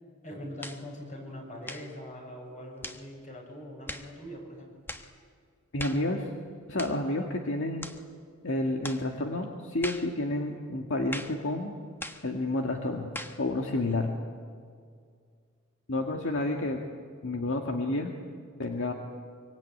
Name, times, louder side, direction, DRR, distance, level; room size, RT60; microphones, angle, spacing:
voice 1, 0.2-4.7, equal, 35° left, 1 dB, 7.1 m, -42 dB
sound 1, 0.6-0.9 1.6-1.9 2.8-3.1 3.9-4.1 4.9-5.1 5.8-6.1 6.8-7.0 7.8-8.0 8.8-9.1 9.8-10.1 11.1-11.4 12.0-12.3 13.1-13.4, left 1 dB, 10° left, 1.3 m, -39 dB
voice 2, 5.7-6.3 6.7-7.9 8.4-11.7 12.2-13.1 13.4-14.1 15.9-16.8 17.2-18.1 18.6-18.9, left 2 dB, 65° left, 2 dB, 1.9 m, -30 dB
25.0 x 24.0 x 9.5 m, 2.1 s
head